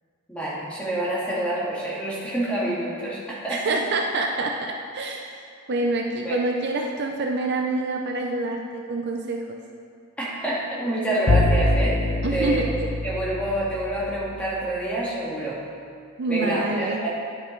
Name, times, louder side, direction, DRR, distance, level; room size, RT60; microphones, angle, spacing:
voice 1, 0.3-3.8 6.2-6.4 10.2-12.0 12.3-12.7 13.0-15.6 16.3-17.1, right 1 dB, 5° left, -8 dB, 1.9 m, -27 dB
voice 2, 3.5-9.6 12.2-12.7 16.2-17.0, right 2 dB, 50° right, 2 dB, 0.5 m, -27 dB
Bowed string instrument, 11.3-14.3, left 2 dB, 50° left, 0.4 m, -24 dB
10.5 x 5.5 x 4.5 m, 2.3 s
head